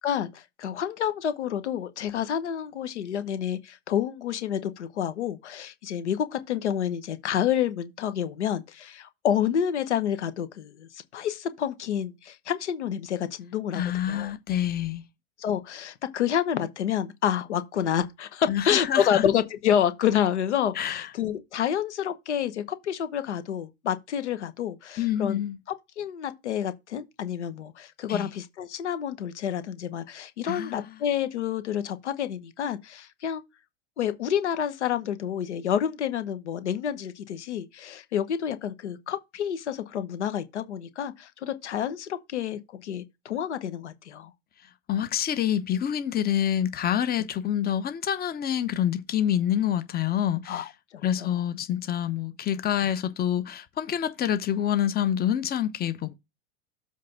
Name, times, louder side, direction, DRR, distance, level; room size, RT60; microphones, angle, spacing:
voice 1, 0.0-14.3 15.4-25.4 25.7-33.4 34.0-44.3 50.5-51.3, left 9 dB, 90° left, 1.1 m, -29 dB
voice 2, 13.7-15.0 18.5-19.2 20.8-21.1 25.0-25.6 28.1-28.3 30.5-30.9 44.9-50.6 51.0-56.1, left 10 dB, 30° left, 0.9 m, -27 dB
7.6 x 3.5 x 5.8 m
hypercardioid pair, 100°, 33 cm